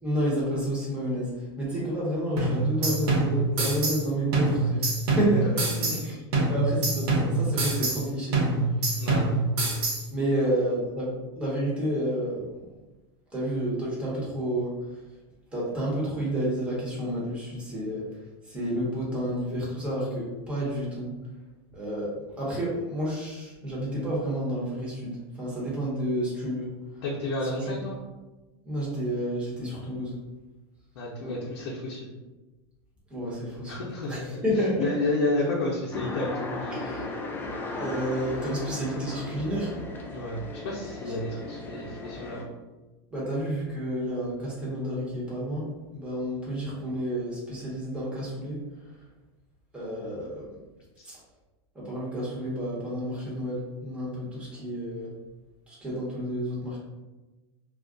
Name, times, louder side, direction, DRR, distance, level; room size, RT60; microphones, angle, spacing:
voice 1, 0.0-5.7 6.0-6.2 6.5-8.4 8.8-8.9 10.1-12.7 13.3-15.0 15.5-18.2 18.4-21.1 21.7-26.7 27.4-27.8 28.6-30.2 31.2-31.3 33.1-34.9 36.7-37.0 37.7-39.7 43.1-48.6 49.7-50.5 51.0-51.2 51.7-55.1 55.7-56.8, right 1 dB, 10° right, -6 dB, 1.1 m, -30 dB
sound 1, 2.4-4.0 4.3-6.0 6.3-8.0 8.3-10.0, right 2 dB, 75° right, 1.0 m, -25 dB
voice 2, 5.8-6.5 9.0-9.5 27.0-28.0 30.9-32.1 33.6-34.4 34.8-36.9 40.1-42.5, left 2 dB, 75° left, -4 dB, 0.7 m, -31 dB
sound 2, 35.9-42.4, left 2 dB, 15° left, 0.4 m, -36 dB
2.4 x 2.2 x 3.7 m, 1.1 s
supercardioid pair, 140°, 14 cm